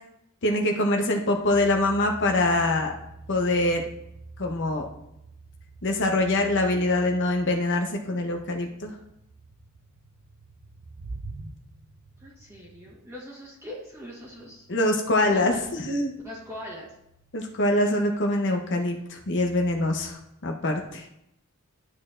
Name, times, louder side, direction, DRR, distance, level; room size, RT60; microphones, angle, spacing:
voice 1, 0.4-2.9 3.3-3.8 4.4-4.9 5.8-8.9 14.7-16.1 17.3-21.0, left 1 dB, 55° left, 3 dB, 0.9 m, -24 dB
sound 1, 1.5-20.1, right 2 dB, 65° right, 0.8 m, -47 dB
voice 2, 12.2-14.7 15.3-15.6 16.2-16.9, left 1 dB, 10° right, -6 dB, 1.3 m, -41 dB
12.0 x 6.4 x 2.5 m, 0.81 s
head